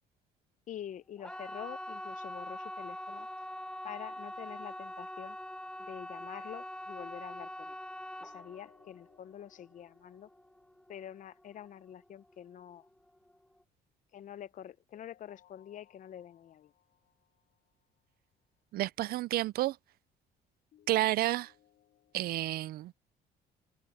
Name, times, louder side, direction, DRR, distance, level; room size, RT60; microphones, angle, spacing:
voice 1, 0.7-3.3 3.8-5.4 5.9-7.8 8.2-10.3 10.9-12.9 14.1-16.7, left 10 dB, 50° left, 0.7 m, -46 dB
sound 1, 1.2-12.0 12.3-12.9 13.3-13.4, left 1 dB, 5° left, 1.1 m, -43 dB
sound 2, 2.3-5.2 8.2-11.2 14.9-18.2 20.7-22.2, left 11 dB, 65° left, 4.2 m, -67 dB
voice 2, 18.7-19.8 20.9-21.5 22.1-22.9, right 15 dB, 65° right, 0.4 m, -30 dB
cardioid pair, 110°, 17 cm